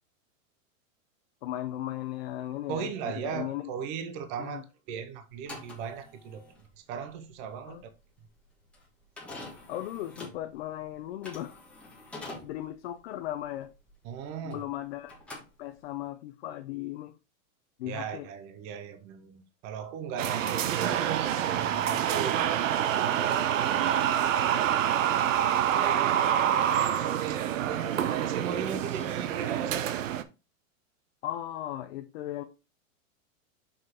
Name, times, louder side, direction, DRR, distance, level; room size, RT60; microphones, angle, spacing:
voice 1, 1.4-3.7 4.4-4.6 7.7-7.8 9.7-11.6 12.4-13.7 14.4-17.1 17.8-18.3 31.2-32.4, left 13 dB, 50° left, 0.7 m, -37 dB
voice 2, 2.7-6.5 6.8-7.9 14.0-14.6 17.9-23.9 26.0-26.8 27.3-30.1, right 7 dB, 20° right, 0.5 m, -38 dB
sound 1, 5.3-14.8 15.0-16.1, left 2 dB, 5° left, 1.4 m, -46 dB
sound 2, 20.2-30.2, right 10 dB, 70° right, 0.9 m, -27 dB
5.9 x 5.4 x 3.5 m
supercardioid pair, 165°, 40 cm